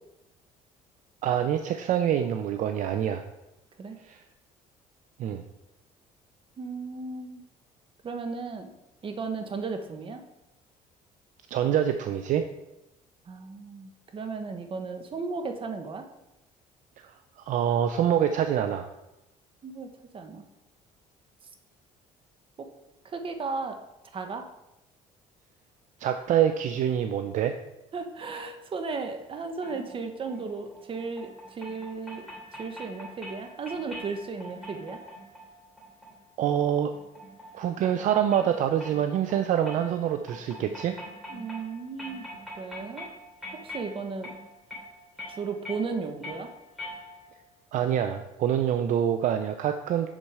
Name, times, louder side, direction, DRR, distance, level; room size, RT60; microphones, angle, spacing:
voice 1, 1.2-3.2 4.0-4.2 5.2-5.4 11.5-12.5 17.0-17.1 17.5-18.9 26.0-27.6 36.4-36.9 37.5-41.0 47.7-50.1, right 9 dB, 65° right, 8 dB, 0.5 m, -26 dB
voice 2, 6.6-7.4 8.0-8.7 9.0-10.2 13.3-16.1 19.6-19.9 20.1-20.4 23.0-23.8 24.1-24.5 27.9-32.3 32.5-35.0 41.3-42.3 42.6-43.1 43.5-44.3 45.3-46.5, right 4 dB, 40° right, 6 dB, 1.2 m, -35 dB
Glass Vase Fast (Accoustic), 29.6-47.5, equal, ahead, 3.4 m, -45 dB
7.4 x 6.6 x 4.8 m, 0.93 s
cardioid pair, 100°, 14 cm